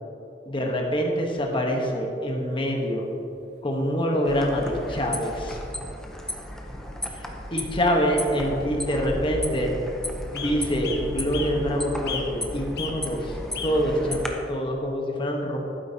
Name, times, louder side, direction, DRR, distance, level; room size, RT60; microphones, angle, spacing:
voice 1, 0.5-3.1 3.6-5.6 7.1-7.2 7.5-9.7 10.3-13.4 13.6-15.6, equal, 30° left, 0 dB, 1.2 m, -25 dB
sound 1, 0.9-1.8 3.0-3.1 3.3-3.4 4.1-4.4 4.7-4.8 5.0-5.3 5.6-5.8 6.8-6.9 7.3-7.4 8.4-8.5 8.8-9.3 9.7-9.8 10.3-10.5 10.8-11.5 12.1-12.5 12.8-12.9 13.5-13.7 14.5-14.6, left 7 dB, 65° left, 0.9 m, -35 dB
sound 2, 4.2-14.3, left 1 dB, 5° left, 0.8 m, -34 dB
12.0 x 9.5 x 2.9 m, 2.9 s
head